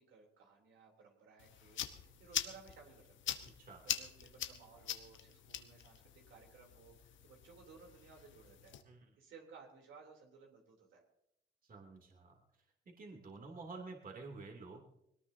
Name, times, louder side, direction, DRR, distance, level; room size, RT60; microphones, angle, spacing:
voice 1, 0.0-8.7 9.2-11.0, right 5 dB, 75° right, 1 dB, 3.4 m, -59 dB
sound 1, 1.4-8.8, left 10 dB, 75° left, 1.1 m, -44 dB
voice 2, 11.7-12.4 13.0-14.8, right 3 dB, 45° right, 1 dB, 2.9 m, -50 dB
21.0 x 18.5 x 2.8 m, 0.80 s
cardioid pair, 90°, 20 cm